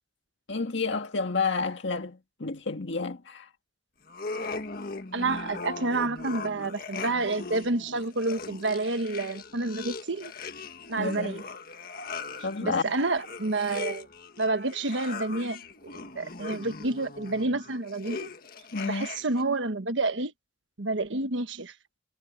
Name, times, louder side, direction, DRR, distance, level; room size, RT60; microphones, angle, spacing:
voice 1, 0.5-3.5 11.0-11.3 12.4-12.8 18.7-19.1, left 4 dB, 80° left, 1.8 m, -30 dB
sound 1, 4.1-19.5, left 4 dB, 50° left, 1.7 m, -39 dB
voice 2, 5.1-10.3 10.9-11.4 12.6-14.1 14.4-18.3 18.8-20.3 20.8-21.7, right 2 dB, 90° right, 1.3 m, -29 dB
head